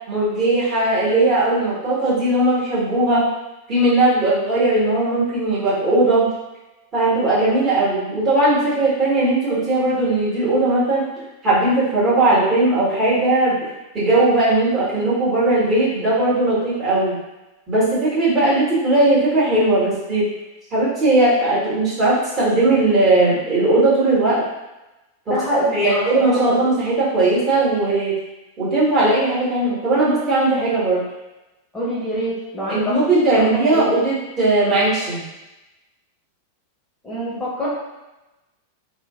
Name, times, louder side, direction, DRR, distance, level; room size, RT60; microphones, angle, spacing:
voice 1, 0.1-3.3 3.7-6.3 6.9-11.0 11.4-13.6 13.9-17.1 17.7-20.3 20.7-24.4 25.3-28.1 28.6-31.0 32.7-35.2, right 2 dB, 30° right, -9 dB, 1.4 m, -18 dB
voice 2, 25.3-26.6 31.7-32.9 33.3-33.9 37.0-37.7, equal, 10° left, -9 dB, 0.9 m, -25 dB
3.1 x 2.3 x 2.3 m, 1.0 s
figure-of-eight pair, 90°, 0 cm